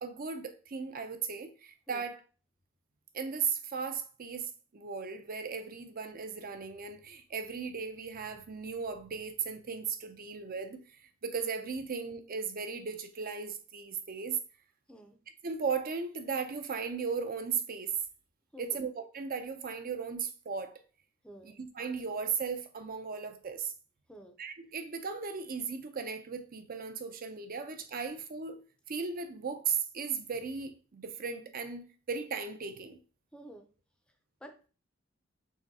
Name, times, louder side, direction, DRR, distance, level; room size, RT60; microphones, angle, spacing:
voice 1, 0.0-2.2 3.1-10.8 11.2-14.4 15.4-18.0 18.6-20.8 21.4-23.7 24.4-28.6 28.9-33.0, right 5 dB, 45° right, 0.6 m, -36 dB
voice 2, 14.9-15.2 18.5-18.8 21.2-21.6 24.1-24.3 33.3-33.7 34.4-34.7, right 1 dB, 5° left, 0.6 m, -50 dB
3.8 x 3.1 x 4.1 m
head